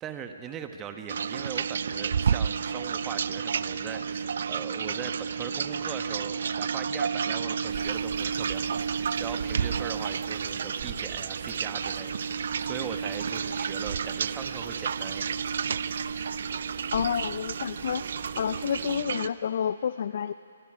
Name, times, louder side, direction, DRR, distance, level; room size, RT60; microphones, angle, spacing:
voice 1, 0.0-15.3, right 7 dB, 15° right, 6 dB, 1.3 m, -40 dB
sound 1, 1.1-19.3, right 6 dB, 55° right, 0.5 m, -31 dB
sound 2, 7.7-19.0, right 7 dB, 35° right, 2.1 m, -46 dB
voice 2, 16.9-18.0 18.4-20.3, left 8 dB, 50° left, 14 dB, 0.4 m, -29 dB
25.0 x 23.0 x 5.1 m, 2.7 s
figure-of-eight pair, 145°, 0 cm